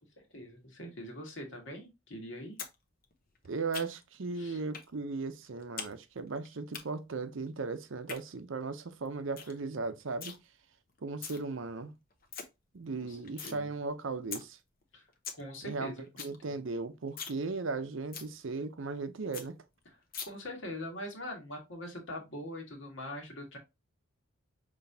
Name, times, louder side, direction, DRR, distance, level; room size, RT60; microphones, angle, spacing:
voice 1, 0.2-2.6 4.3-4.6 13.0-13.2 13.4-13.7 14.9-15.1 15.3-16.3 19.8-20.0 20.2-23.6, left 1 dB, 65° left, 1.6 m, -43 dB
sound 1, 2.6-2.7 3.0-4.2 4.7-4.9 5.2-5.9 6.2-6.8 7.8-8.2 8.7-8.8 9.0-9.1 9.4-9.6 9.8-10.4 11.0-11.4 11.8-11.9 12.1-12.4 12.8-13.6 13.9-14.0 14.3-14.4 14.8-14.9 15.1-15.4 15.7-15.8 16.0-16.4 16.7-16.8 17.1-17.4 17.7-17.8 18.1-18.3 18.7-18.8 19.0-19.1 19.3-19.5 20.1-20.3, left 6 dB, 45° left, 0.8 m, -41 dB
voice 2, 3.4-10.4 11.0-11.9 12.7-14.6 15.6-15.9 16.2-19.6, right 3 dB, 65° right, 0.6 m, -37 dB
5.9 x 3.1 x 2.7 m
head